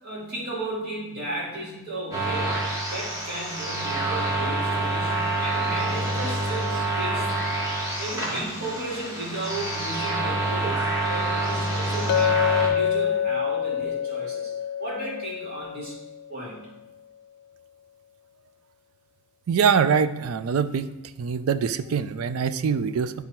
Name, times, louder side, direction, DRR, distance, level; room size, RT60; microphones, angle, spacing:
voice 1, 0.0-2.6 2.9-7.3 8.0-14.5 14.8-15.9 16.3-16.6, right 1 dB, 45° right, -6 dB, 2.7 m, -34 dB
sound 1, 2.1-12.7, right 2 dB, 15° right, 1.7 m, -27 dB
Chink clink, 12.1-16.3, left 9 dB, 85° left, 0.3 m, -26 dB
voice 2, 19.5-20.9 21.2-23.1, right 6 dB, 75° right, 13 dB, 0.4 m, -23 dB
9.8 x 3.5 x 4.4 m, 1.0 s
head